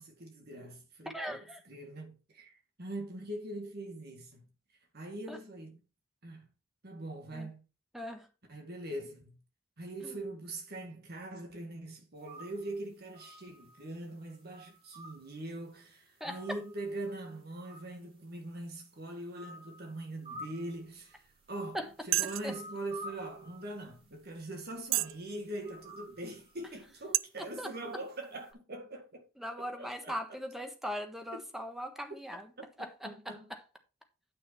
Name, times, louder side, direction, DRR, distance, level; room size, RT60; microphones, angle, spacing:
voice 1, 0.0-1.4 1.7-4.5 4.9-5.8 6.2-6.5 6.8-7.6 8.5-9.4 9.8-21.8 22.1-29.2 29.8-30.2 31.3-31.4 32.8-33.4, right 1 dB, 55° right, 2.0 m, -42 dB
voice 2, 1.0-1.6 5.3-5.4 7.3-7.5 7.9-8.3 10.0-10.2 16.2-16.6 21.7-21.9 22.2-22.6 27.4-27.8 29.4-32.5 32.8-33.6, equal, ahead, 1.3 m, -40 dB
sound 1, 12.2-28.5, right 1 dB, 30° right, 3.6 m, -53 dB
sound 2, 21.3-21.5 22.1-22.6 23.3-23.4 24.0-24.1 24.9-25.2 25.8-25.9 26.6-26.7 27.1-27.2, right 16 dB, 85° right, 0.4 m, -29 dB
9.3 x 6.1 x 4.3 m
head